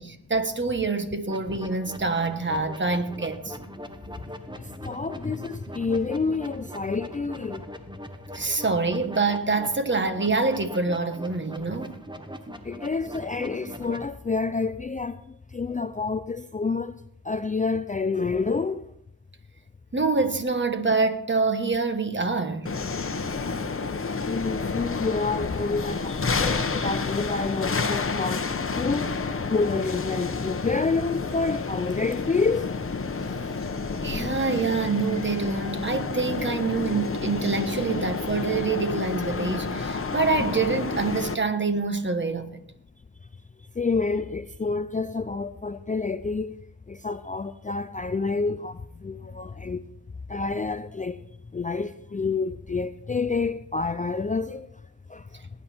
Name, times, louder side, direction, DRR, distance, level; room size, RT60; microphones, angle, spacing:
voice 1, 0.0-3.6 8.3-12.0 19.9-22.7 34.0-42.5, right 3 dB, 30° right, 1.3 m, -26 dB
sound 1, 1.3-14.1, equal, 15° right, 1.2 m, -41 dB
voice 2, 4.6-7.6 8.3-8.4 12.6-17.0 17.2-18.9 24.3-32.7 33.6-33.7 43.8-46.6 46.9-49.8 50.3-51.2 51.5-54.7 55.1-55.4, left 4 dB, 20° left, 0.4 m, -28 dB
sound 2, 22.7-41.4, left 4 dB, 40° left, 1.0 m, -30 dB
18.5 x 9.6 x 4.4 m
wide cardioid pair, 95°, 36 cm